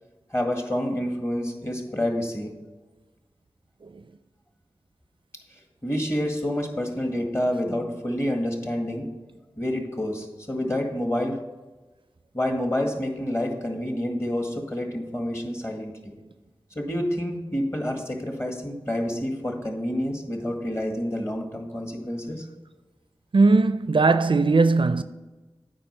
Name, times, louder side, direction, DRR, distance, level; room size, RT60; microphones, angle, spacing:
voice 1, 0.3-2.5 5.8-9.0 9.6-11.4 12.3-16.1 16.8-22.4, left 1 dB, 30° left, 2.0 m, -28 dB
voice 2, 23.3-25.0, right 3 dB, 60° right, 0.4 m, -19 dB
8.8 x 5.1 x 6.9 m
wide cardioid pair, 40°, 10 cm